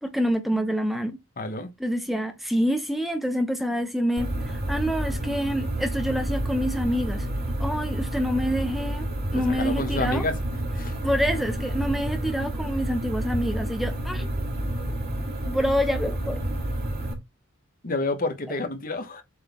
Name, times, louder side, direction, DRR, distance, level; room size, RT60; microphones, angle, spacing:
voice 1, 0.0-1.2 1.8-7.3 7.6-10.3 11.0-14.4 15.5-16.4, equal, ahead, 0.7 m, -27 dB
voice 2, 1.4-1.7 9.3-10.4 10.8-11.0 17.8-19.2, left 2 dB, 40° left, 1.2 m, -29 dB
sound 1, 4.2-17.1, right 1 dB, 45° right, 2.2 m, -29 dB
7.6 x 4.1 x 3.6 m
head